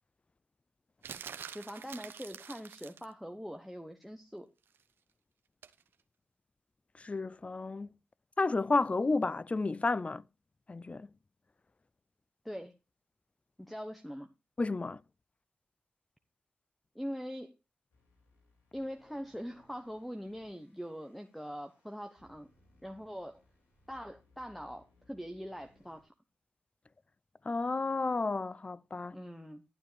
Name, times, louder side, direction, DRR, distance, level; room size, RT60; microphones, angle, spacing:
sound 1, 1.0-3.1 5.6-5.8, right 7 dB, 80° right, 0.8 m, -46 dB
voice 1, 1.5-4.5 12.4-12.8 13.6-14.3 16.9-17.5 18.7-22.5 22.8-23.4 23.9-26.1 29.1-29.6, equal, ahead, 1.0 m, -43 dB
voice 2, 7.0-7.9 8.4-10.2 10.7-11.1 14.6-15.0 27.5-29.2, left 3 dB, 35° left, 0.5 m, -31 dB
sound 2, 17.9-26.0, left 2 dB, 90° left, 3.4 m, -67 dB
11.5 x 9.0 x 3.3 m
supercardioid pair, 40°, 4 cm